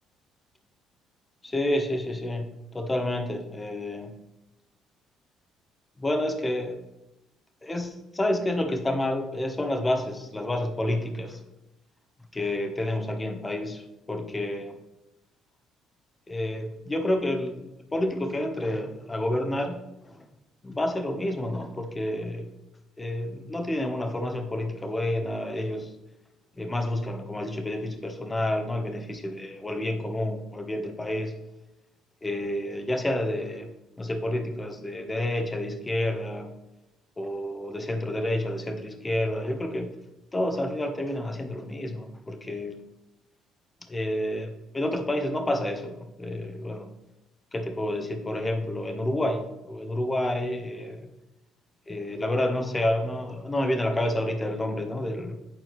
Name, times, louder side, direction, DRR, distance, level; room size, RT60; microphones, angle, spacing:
voice 1, 1.4-4.1 6.0-6.8 7.6-11.4 12.3-13.8 14.1-14.8 16.3-20.2 20.6-22.5 23.0-25.9 26.6-31.3 32.2-33.7 34.0-36.5 37.2-39.9 40.3-42.7 43.9-46.9 47.5-51.1 51.9-55.4, left 1 dB, 20° left, 5 dB, 1.1 m, -29 dB
9.2 x 4.3 x 3.2 m, 0.93 s
hypercardioid pair, 55°, 0 cm